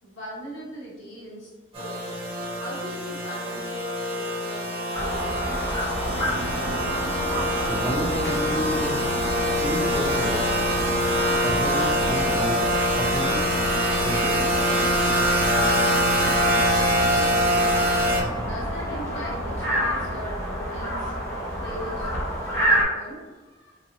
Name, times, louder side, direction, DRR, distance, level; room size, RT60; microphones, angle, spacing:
voice 1, 0.0-2.0 2.6-6.2 18.4-21.2 21.6-22.1 22.4-23.8, equal, 90° left, -6 dB, 1.5 m, -40 dB
sound 1, 1.7-18.2, equal, 30° right, 1.2 m, -24 dB
sound 2, 4.9-22.8, equal, 15° left, 0.9 m, -29 dB
sound 3, 6.1-20.2, right 1 dB, 80° right, 0.4 m, -38 dB
voice 2, 7.7-9.0 9.6-10.4 11.4-12.6 12.9-13.3 14.0-14.5, right 1 dB, 10° right, -1 dB, 0.4 m, -30 dB
4.0 x 2.5 x 2.7 m, 1.3 s
head